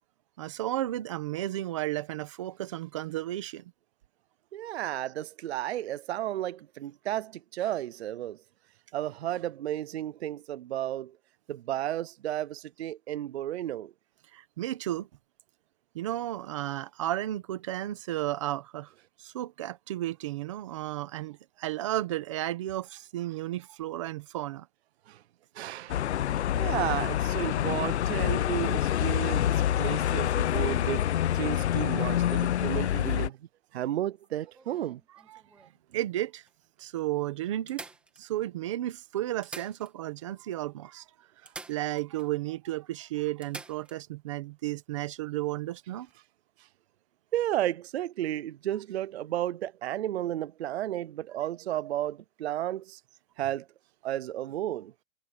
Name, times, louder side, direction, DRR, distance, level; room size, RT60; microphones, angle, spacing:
voice 1, 0.4-3.6 14.3-15.1 15.9-18.9 19.2-24.7 35.3-36.4 36.8-37.8 38.2-41.0 41.7-46.1, right 14 dB, 25° right, 0.9 m, -33 dB
voice 2, 4.5-8.4 8.9-11.1 11.5-13.9 25.1-25.2 25.6-26.0 26.6-31.1 31.3-33.4 33.7-35.0 47.3-53.0 53.4-53.6 54.0-54.9, right 12 dB, 55° right, 0.5 m, -33 dB
sound 1, 25.9-33.3, left 11 dB, 55° left, 0.7 m, -27 dB
sound 2, 34.2-35.8 36.5-36.6 36.8-36.9 37.7-38.7 39.3-40.3 40.5-40.6 41.5-42.3 42.6-42.7 43.4-44.0 46.0-46.1, right 3 dB, 5° right, 1.4 m, -47 dB
hypercardioid pair, 180°, 39 cm